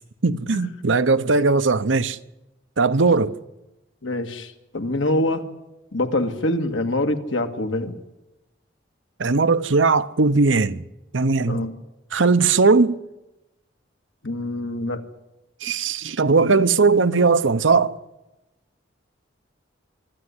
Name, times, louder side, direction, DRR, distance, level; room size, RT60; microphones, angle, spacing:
voice 1, 0.2-2.2 2.8-3.4 9.2-10.8 11.1-11.7 12.1-13.0 15.6-17.9, right 4 dB, 90° right, 0.9 m, -19 dB
voice 2, 4.0-5.4 5.9-7.9 11.5-11.7 14.2-15.0, left 1 dB, 85° left, 2.0 m, -25 dB
25.0 x 13.0 x 9.8 m
head